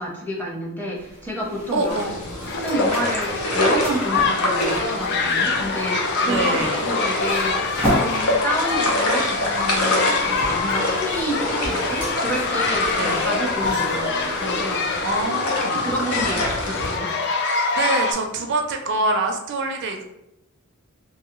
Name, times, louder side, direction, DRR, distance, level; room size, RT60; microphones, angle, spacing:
voice 1, 0.0-2.0 2.6-7.6 7.9-14.9 15.7-17.1, equal, 10° left, -3 dB, 0.7 m, -29 dB
sound 1, 0.9-15.2, equal, 30° left, 1.2 m, -34 dB
voice 2, 1.7-2.2 6.3-6.8 13.0-13.3 15.0-15.8 17.8-20.0, right 2 dB, 55° right, 3 dB, 0.4 m, -25 dB
sound 2, 1.9-17.0, left 1 dB, 85° left, 0.7 m, -26 dB
sound 3, 2.5-18.1, left 4 dB, 55° left, 0.4 m, -25 dB
2.7 x 2.7 x 2.9 m, 0.87 s
head